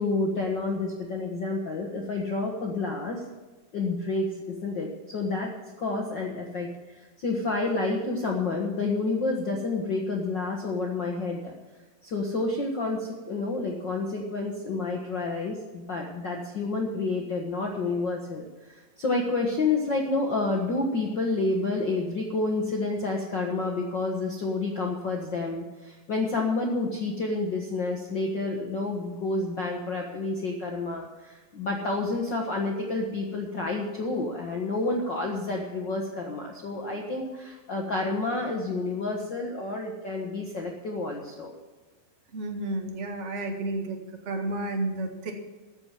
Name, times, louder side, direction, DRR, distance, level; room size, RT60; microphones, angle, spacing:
voice 1, 0.0-3.2 3.7-6.7 7.0-11.5 12.0-41.5, left 3 dB, 55° left, -1 dB, 1.2 m, -29 dB
voice 2, 42.3-44.0 44.2-45.3, right 2 dB, 45° right, 3 dB, 0.9 m, -31 dB
14.0 x 7.0 x 7.5 m, 1.2 s
omnidirectional pair, 4.0 m